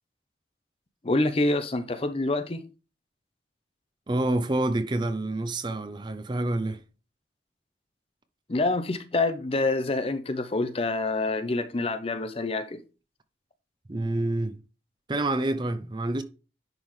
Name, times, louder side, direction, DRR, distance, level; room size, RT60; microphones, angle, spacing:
voice 1, 1.0-2.6 8.5-12.8, left 2 dB, 30° left, 0.6 m, -27 dB
voice 2, 4.1-6.8 13.9-14.6 15.1-16.2, right 2 dB, 25° right, 0.5 m, -27 dB
10.5 x 3.7 x 3.1 m
head